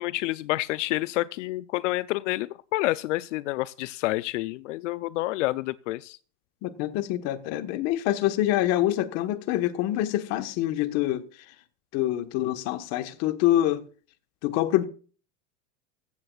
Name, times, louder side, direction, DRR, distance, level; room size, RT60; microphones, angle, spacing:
voice 1, 0.0-6.2, left 18 dB, 85° left, 0.6 m, -28 dB
voice 2, 6.6-11.3 11.9-13.8 14.4-14.8, left 14 dB, 45° left, 1.4 m, -26 dB
15.5 x 15.5 x 2.4 m
supercardioid pair, 155°, 36 cm